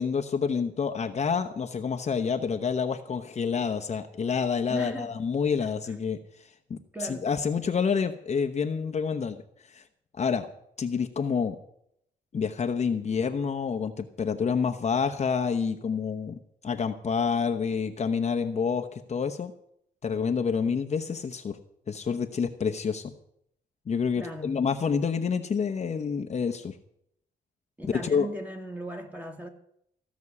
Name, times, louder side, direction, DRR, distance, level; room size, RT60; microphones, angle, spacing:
voice 1, 0.0-9.4 9.7-9.8 10.2-10.5 10.8-11.6 12.3-19.5 20.0-21.6 21.9-23.1 23.9-26.8 28.0-28.3, left 6 dB, 40° left, 4 dB, 1.0 m, -28 dB
voice 2, 4.7-5.1 5.6-5.7 6.9-7.3 24.2-24.6 27.8-29.5, right 1 dB, 10° right, 4 dB, 2.2 m, -37 dB
15.5 x 6.2 x 9.6 m, 0.73 s
cardioid pair, 105°, 17 cm